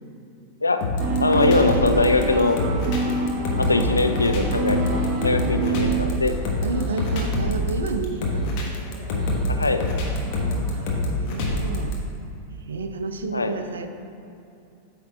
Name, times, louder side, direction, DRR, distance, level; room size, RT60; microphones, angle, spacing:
sound 1, 0.8-11.9, left 1 dB, 45° left, 1.1 m, -25 dB
sound 2, 1.0-6.0, right 3 dB, 30° right, 1.0 m, -27 dB
voice 1, 1.2-2.6 3.6-6.3 9.5-9.8 13.3-13.6, left 3 dB, 80° left, 7 dB, 0.4 m, -22 dB
voice 2, 2.8-3.3 6.3-6.4 6.6-8.7 9.5-9.8 10.7-12.0 12.7-13.9, right 4 dB, 65° right, 8 dB, 0.4 m, -31 dB
sound 3, 5.1-10.8, right 1 dB, 10° right, 1.1 m, -42 dB
8.3 x 3.6 x 4.6 m, 2.7 s
figure-of-eight pair, 90°, 0 cm